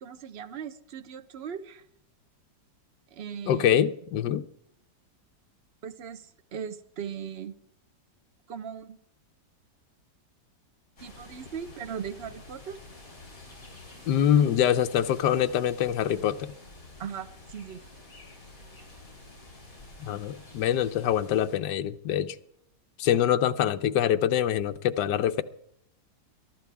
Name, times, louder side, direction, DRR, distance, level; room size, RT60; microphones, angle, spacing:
voice 1, 0.0-1.8 3.1-3.8 5.8-7.5 8.5-9.0 11.0-12.8 17.0-17.8, right 7 dB, 45° right, 0.9 m, -38 dB
voice 2, 3.5-4.5 14.1-16.5 20.0-22.4 23.0-25.4, left 10 dB, 70° left, 1.3 m, -24 dB
sound 1, 11.0-21.5, left 2 dB, 45° left, 5.1 m, -49 dB
22.5 x 12.0 x 3.5 m
omnidirectional pair, 2.0 m